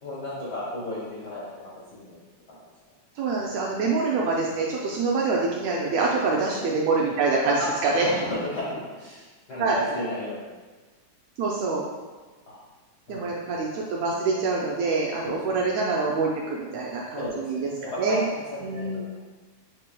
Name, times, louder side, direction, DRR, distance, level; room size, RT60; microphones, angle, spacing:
voice 1, 0.0-2.2 2.5-2.6 6.0-6.5 7.6-10.5 12.5-12.6 13.1-13.3 13.7-13.8 15.2-15.7 17.1-18.9, left 1 dB, 75° left, -8 dB, 0.9 m, -34 dB
voice 2, 3.2-8.1 9.6-9.8 11.4-11.8 13.1-18.2 18.6-19.0, right 4 dB, 80° right, -3 dB, 1.5 m, -25 dB
7.3 x 3.2 x 2.2 m, 1.3 s
omnidirectional pair, 3.4 m